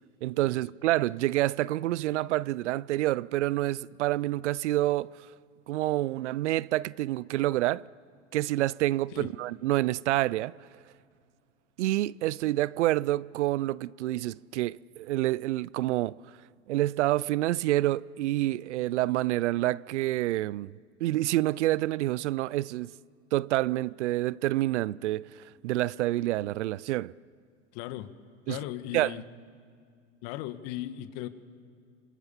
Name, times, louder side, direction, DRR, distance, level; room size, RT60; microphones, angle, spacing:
voice 1, 0.2-5.2 5.7-7.9 8.3-10.5 11.8-16.2 16.7-20.7 21.0-22.9 23.3-27.1 28.5-28.6 28.9-29.1, right 16 dB, 80° right, 0.5 m, -28 dB
voice 2, 27.7-28.1 28.5-29.2 30.2-31.3, left 14 dB, 65° left, 1.6 m, -37 dB
26.0 x 26.0 x 7.2 m
hypercardioid pair, 90°, 34 cm